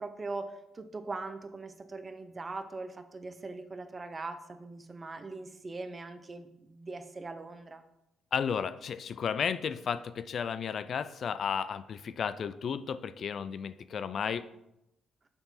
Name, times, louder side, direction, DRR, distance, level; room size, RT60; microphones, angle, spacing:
voice 1, 0.0-7.8, right 3 dB, 30° right, 9 dB, 0.8 m, -41 dB
voice 2, 8.3-14.5, left 7 dB, 55° left, 14 dB, 0.4 m, -33 dB
6.8 x 5.7 x 4.1 m, 0.86 s
cardioid pair, 90°, 0 cm